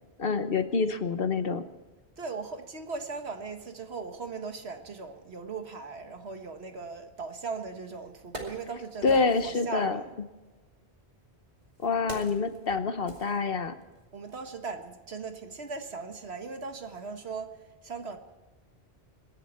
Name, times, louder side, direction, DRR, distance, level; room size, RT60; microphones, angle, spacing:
voice 1, 0.2-1.6 9.0-10.0 11.8-13.7, left 4 dB, 60° left, 1.2 m, -27 dB
voice 2, 2.2-10.2 14.1-18.2, right 4 dB, 70° right, 1.8 m, -38 dB
Wood, 7.5-7.6 8.0-9.7 10.6-14.0 14.3-14.4, right 1 dB, 40° right, 2.8 m, -45 dB
26.5 x 11.0 x 4.4 m
omnidirectional pair, 1.1 m